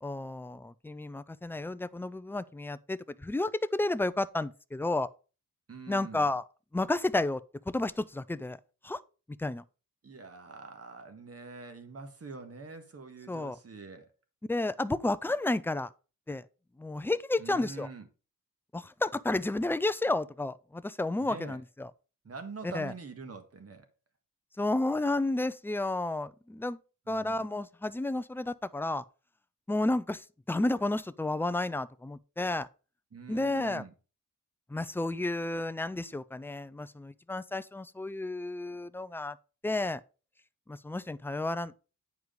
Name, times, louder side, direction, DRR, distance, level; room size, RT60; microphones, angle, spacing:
voice 1, 0.0-5.1 5.9-6.4 6.7-8.6 8.8-9.0 9.4-9.6 13.3-13.6 14.5-15.9 16.3-16.4 16.8-17.9 18.7-21.9 22.6-22.9 24.6-26.8 27.1-29.0 29.7-32.7 33.3-33.8 34.7-39.4 39.6-40.0 40.7-41.8, left 2 dB, 5° left, 0.4 m, -31 dB
voice 2, 5.7-6.3 10.0-14.1 17.4-18.1 21.2-21.6 22.2-23.9 27.1-27.4 33.1-33.9, right 4 dB, 45° right, 1.6 m, -45 dB
9.5 x 4.7 x 5.1 m
wide cardioid pair, 130°, 33 cm